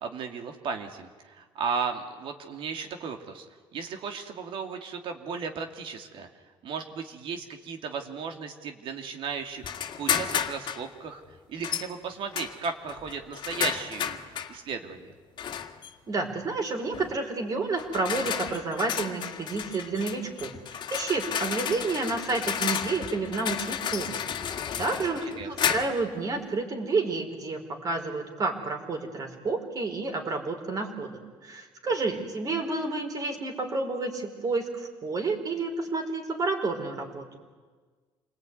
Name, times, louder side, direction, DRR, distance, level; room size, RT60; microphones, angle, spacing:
voice 1, 0.0-3.5 3.7-6.3 6.6-11.2 11.5-14.2 14.5-15.1 25.4-25.5 32.1-32.2, right 5 dB, 65° right, 5 dB, 2.7 m, -35 dB
sound 1, 9.6-10.9 11.6-11.9 12.3-14.6 15.4-15.9 16.9-17.2 17.8-26.1, left 8 dB, 55° left, 1.8 m, -32 dB
voice 2, 16.1-20.5 20.9-24.2 24.5-37.3, right 3 dB, 40° right, 3 dB, 4.8 m, -30 dB
28.0 x 19.5 x 9.6 m, 1.4 s
cardioid pair, 115°, 9 cm